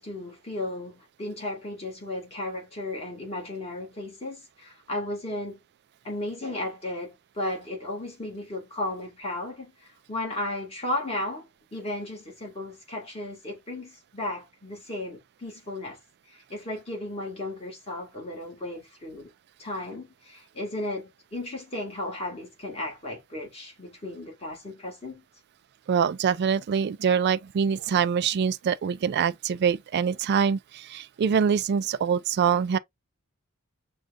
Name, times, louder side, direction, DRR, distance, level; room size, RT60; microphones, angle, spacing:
voice 1, 0.0-5.6 6.0-16.0 16.3-19.3 19.6-25.2, left 1 dB, 30° left, 1.8 m, -35 dB
voice 2, 25.9-32.8, right 7 dB, 50° right, 0.3 m, -24 dB
6.2 x 2.3 x 2.5 m
head